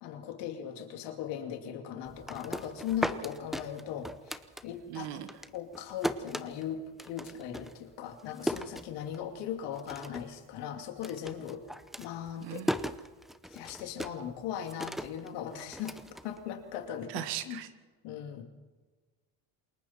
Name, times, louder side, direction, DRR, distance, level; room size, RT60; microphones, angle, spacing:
voice 1, 0.0-5.1 5.5-11.6 12.0-12.6 13.5-15.9 16.2-17.6 18.0-18.4, left 9 dB, 80° left, 5 dB, 2.6 m, -39 dB
sound 1, 2.0-5.0 5.3-9.4 9.7-10.4 10.6-16.9, equal, ahead, 0.7 m, -37 dB
voice 2, 4.9-5.3 12.4-12.7 17.1-17.7, right 12 dB, 80° right, 9 dB, 2.0 m, -37 dB
28.0 x 21.0 x 4.4 m, 1.3 s
cardioid pair, 120°, 41 cm